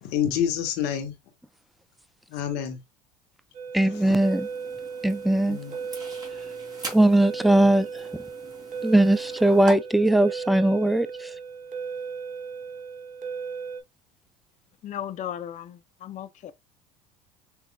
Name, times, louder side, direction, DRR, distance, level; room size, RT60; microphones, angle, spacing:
voice 1, 0.0-1.1 2.3-2.8 4.0-4.2 5.5-5.7, left 9 dB, 60° left, 1.7 m, -28 dB
sound 1, 3.5-13.8, right 5 dB, 45° right, 1.3 m, -36 dB
voice 2, 3.7-4.5 5.0-5.6 6.9-7.9 8.8-11.3, right 1 dB, ahead, 0.4 m, -20 dB
sound 2, 3.9-9.7, right 2 dB, 20° right, 3.1 m, -41 dB
voice 3, 14.8-16.5, left 10 dB, 40° left, 0.6 m, -36 dB
6.0 x 3.5 x 2.3 m
hypercardioid pair, 75°, 19 cm